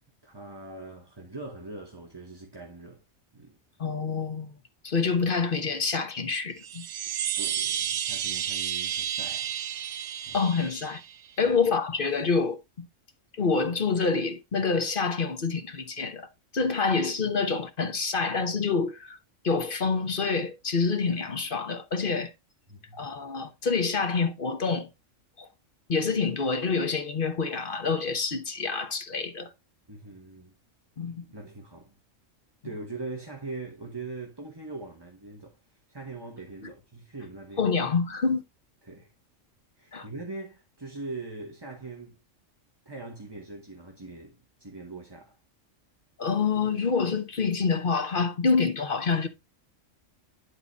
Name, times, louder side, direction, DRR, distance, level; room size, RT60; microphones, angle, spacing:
voice 1, 0.2-3.0 3.3-3.6 7.0-9.8 10.3-10.4 11.4-11.5 22.7-23.1 29.9-30.5 31.3-31.9 32.6-37.7 38.8-39.1 39.8-42.2 42.8-45.4, right 3 dB, 20° right, 1.2 m, -42 dB
voice 2, 3.8-4.6 4.8-6.8 10.3-11.0 11.4-12.8 13.3-19.2 19.4-22.3 22.9-24.9 25.4-25.5 25.9-29.5 31.0-31.2 36.6-36.7 37.6-38.4 39.9-40.1 46.2-49.3, left 4 dB, 45° left, 1.2 m, -27 dB
Chime, 6.6-11.3, right 9 dB, 75° right, 0.9 m, -31 dB
11.0 x 3.9 x 4.0 m
omnidirectional pair, 1.3 m